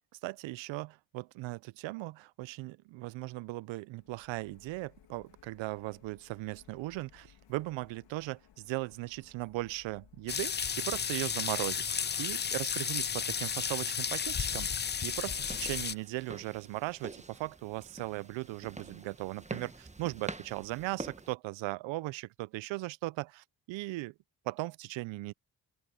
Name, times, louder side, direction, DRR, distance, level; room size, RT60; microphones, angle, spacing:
voice 1, 0.2-24.1 24.4-25.3, right 20 dB, 80° right, 0.8 m, -38 dB
Printer, 4.0-14.3, left 10 dB, 70° left, 3.8 m, -62 dB
sound 1, 10.3-15.9, left 7 dB, 25° left, 0.5 m, -33 dB
sound 2, 15.1-21.3, right 2 dB, 15° right, 1.5 m, -46 dB
open air
hypercardioid pair, 45°, 45 cm